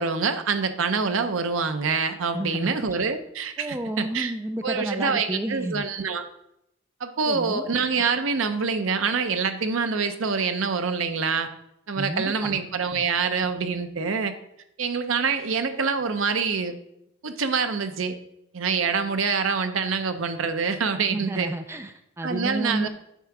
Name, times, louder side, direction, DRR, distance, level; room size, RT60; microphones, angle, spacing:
voice 1, 0.0-4.3 4.6-6.3 7.0-11.5 11.9-14.3 14.8-16.7 17.2-18.2 18.5-21.5 22.2-22.9, right 5 dB, 75° right, 9 dB, 0.7 m, -26 dB
voice 2, 2.3-2.8 3.6-5.9 7.3-7.7 12.0-12.6 13.0-13.1 21.1-22.9, right 1 dB, 10° right, 7 dB, 0.3 m, -31 dB
9.2 x 3.7 x 5.9 m, 0.80 s
head